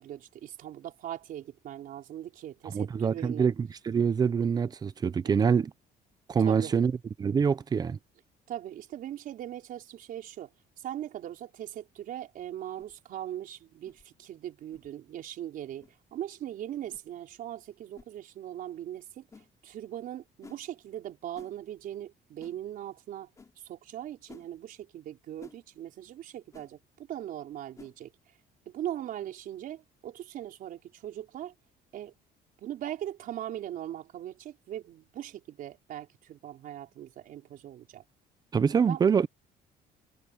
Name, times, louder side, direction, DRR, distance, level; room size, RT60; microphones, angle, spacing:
voice 1, 0.0-3.5 5.2-5.4 6.4-6.7 8.5-10.5 10.8-19.3 19.6-23.3 23.6-28.1 28.7-31.5 31.9-32.1 32.6-38.0 38.9-39.0, right 11 dB, 55° right, 4.5 m, -40 dB
voice 2, 2.7-5.7 6.3-6.9 7.2-8.0 38.5-39.3, right 6 dB, 25° right, 0.7 m, -25 dB
sound 1, 12.8-12.9 13.8-14.0 14.7-14.9 15.8-15.9 16.9-17.1 17.9-18.1 19.3-19.5 20.4-20.6 21.3-21.5 22.4-22.6 23.4-23.5 24.3-24.5 25.4-25.6 26.5-26.7 27.7-28.0, left 4 dB, 20° left, 2.9 m, -52 dB
cardioid pair, 160°, 17 cm